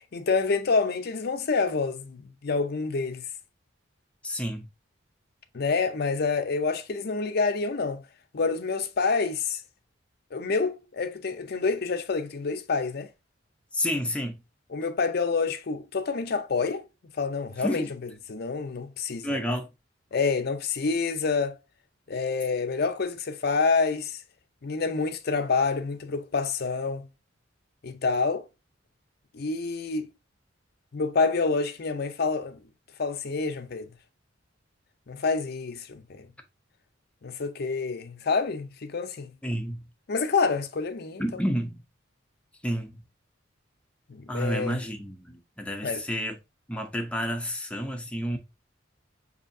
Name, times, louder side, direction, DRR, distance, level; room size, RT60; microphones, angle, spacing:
voice 1, 0.1-3.2 5.5-8.0 8.3-9.6 10.3-13.1 14.7-16.8 17.1-19.3 20.1-21.6 22.1-24.2 24.6-27.1 27.8-28.4 29.3-30.1 30.9-32.6 33.0-33.9 35.1-36.3 37.2-39.3 40.1-41.2 44.1-44.8 45.8-46.0, left 4 dB, 55° left, 0.6 m, -27 dB
voice 2, 4.2-4.7 13.7-14.4 17.6-17.9 19.2-19.7 39.4-39.9 41.2-41.8 42.6-43.0 44.3-46.4 46.7-48.4, equal, 5° left, 0.6 m, -30 dB
5.3 x 2.7 x 2.6 m
head